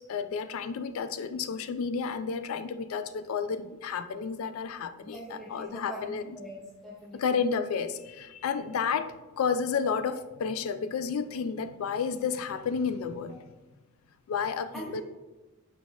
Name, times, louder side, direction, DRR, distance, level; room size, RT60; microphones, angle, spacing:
voice 1, 0.1-6.2 7.2-13.4 14.3-15.0, left 6 dB, 85° left, 11 dB, 0.3 m, -31 dB
voice 2, 5.0-7.4 13.3-13.4 14.7-15.0, right 1 dB, ahead, -4 dB, 0.4 m, -43 dB
4.7 x 4.0 x 2.3 m, 1.1 s
head